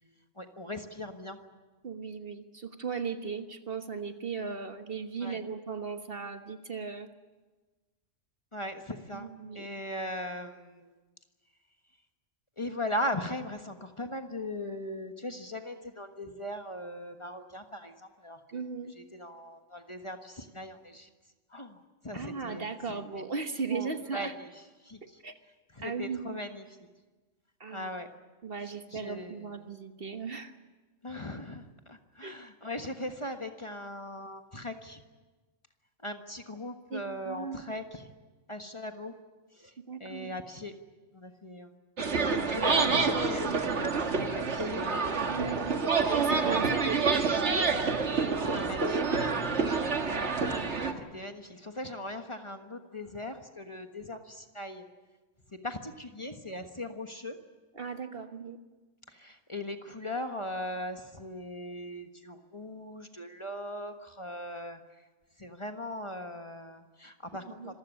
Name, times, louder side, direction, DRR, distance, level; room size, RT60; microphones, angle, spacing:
voice 1, 0.4-1.4 5.2-5.4 8.5-9.3 9.5-10.9 12.6-17.9 18.2-18.4 19.1-21.1 21.5-21.8 22.0-23.0 23.7-24.5 24.9-25.0 25.8-26.6 27.7-28.1 28.9-29.5 31.0-35.0 36.0-38.0 38.5-39.1 39.6-39.7 40.0-40.7 41.1-41.7 42.3-45.3 46.4-46.9 48.1-49.3 51.0-54.8 55.6-57.4 59.2-64.8 65.4-67.8, left 1 dB, 25° left, 6 dB, 1.4 m, -39 dB
voice 2, 1.8-7.1 9.1-9.7 18.5-18.9 22.1-24.3 25.0-25.3 25.8-26.4 27.6-27.9 28.4-30.5 32.2-32.4 36.9-37.8 39.9-40.3 42.6-43.0 45.3-45.7 46.1-47.2 49.9-50.2 57.7-58.6 67.6-67.7, right 5 dB, 50° right, 7 dB, 1.5 m, -37 dB
sound 1, 42.0-50.9, right 4 dB, 65° right, 2.0 m, -28 dB
26.5 x 15.5 x 9.9 m, 1.3 s
omnidirectional pair, 1.3 m